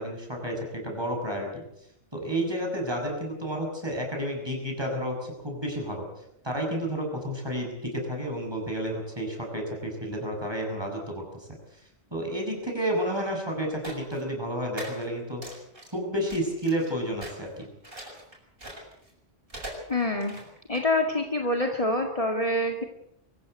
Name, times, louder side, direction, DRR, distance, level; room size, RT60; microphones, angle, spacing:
voice 1, 0.0-1.6 2.1-6.1 6.4-11.5 12.1-15.6 15.9-17.7, equal, 20° right, 1 dB, 6.9 m, -31 dB
sound 1, 13.8-14.2 14.8-15.0 15.4-15.9 16.3-16.9 17.2-19.1 19.5-20.8, right 1 dB, 45° right, 7.1 m, -41 dB
voice 2, 19.9-20.4 20.7-22.8, left 1 dB, 30° left, 2 dB, 2.1 m, -26 dB
24.0 x 15.5 x 8.0 m, 0.77 s
omnidirectional pair, 1.2 m